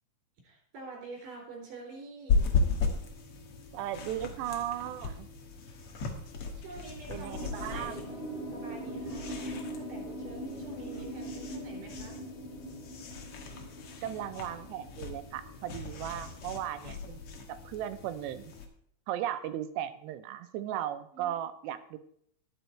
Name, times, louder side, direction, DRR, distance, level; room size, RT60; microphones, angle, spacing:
voice 1, 0.4-2.5 6.5-8.2 8.5-12.2 15.9-16.0 21.1-21.4, right 3 dB, 55° right, -1 dB, 5.5 m, -47 dB
sound 1, 2.3-18.7, left 4 dB, 80° left, 1.3 m, -36 dB
voice 2, 3.7-5.3 7.1-8.0 14.0-17.2 17.5-18.5 19.1-22.0, right 11 dB, 90° right, 12 dB, 2.9 m, -36 dB
sound 2, 7.3-16.7, right 1 dB, 25° left, 3.6 m, -42 dB
11.0 x 10.5 x 4.5 m, 0.66 s
omnidirectional pair, 4.9 m